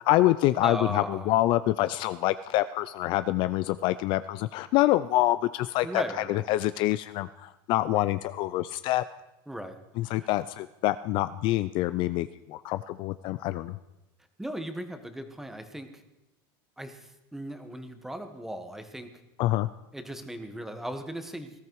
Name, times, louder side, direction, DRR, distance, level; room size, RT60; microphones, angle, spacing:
voice 1, 0.0-6.0 6.3-9.0 10.0-13.8 19.4-19.7, left 16 dB, 45° left, 14 dB, 0.4 m, -26 dB
voice 2, 0.6-1.3 5.8-6.4 9.5-9.8 10.1-10.3 14.4-16.0 16.8-19.1 19.9-21.6, right 1 dB, 5° right, 8 dB, 1.4 m, -37 dB
19.0 x 13.5 x 4.7 m, 0.96 s
supercardioid pair, 155°, 12 cm